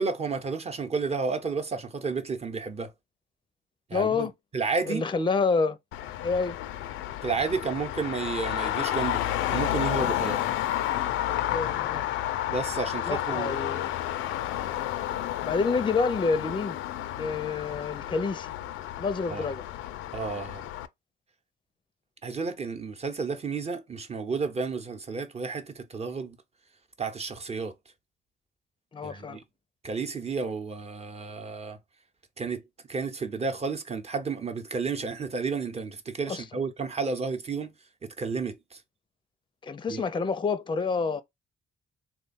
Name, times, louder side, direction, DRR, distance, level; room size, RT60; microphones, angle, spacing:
voice 1, 0.0-2.9 3.9-5.0 7.2-9.2 9.5-10.4 12.5-13.6 19.3-19.5 20.1-20.6 22.2-26.4 27.0-27.7 29.0-29.4 29.8-31.8 32.4-32.6 32.9-37.7 38.0-38.8 39.9-40.0, right 4 dB, 30° right, 0.9 m, -31 dB
voice 2, 3.9-4.3 4.9-5.8 6.2-6.6 11.5-12.0 13.1-13.9 15.5-16.8 17.1-18.5 19.0-19.6 28.9-29.4 36.3-36.4 39.6-41.2, left 4 dB, 25° left, 0.5 m, -28 dB
Traffic noise roadway noise, 5.9-20.9, left 12 dB, 90° left, 0.4 m, -31 dB
3.5 x 2.3 x 4.0 m
cardioid pair, 90°, 20 cm